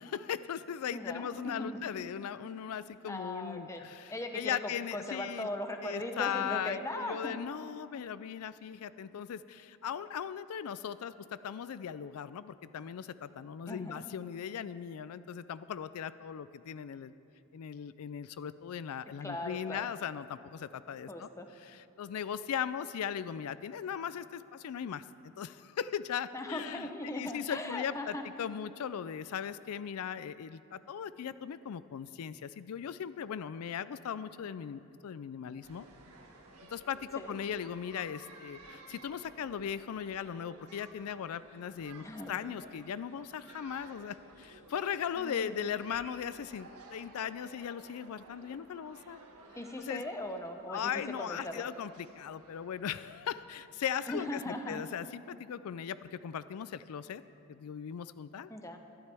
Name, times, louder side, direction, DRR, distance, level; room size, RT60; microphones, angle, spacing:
voice 1, 0.0-5.5 5.8-17.1 17.5-21.3 21.6-35.9 36.7-49.2 49.9-50.0 50.7-57.2 57.5-58.5, left 8 dB, 80° left, 15 dB, 0.4 m, -38 dB
voice 2, 0.9-1.8 3.0-3.8 4.1-7.4 13.7-14.0 19.2-19.9 21.1-21.5 26.3-28.2 37.2-37.3 42.0-42.3 45.2-45.7 49.6-50.9 51.2-51.6 54.1-54.8 58.5-58.8, left 1 dB, 15° left, 5 dB, 0.8 m, -39 dB
sound 1, 35.6-53.5, right 2 dB, 90° right, 1.6 m, -55 dB
23.0 x 11.5 x 3.4 m, 2.7 s
head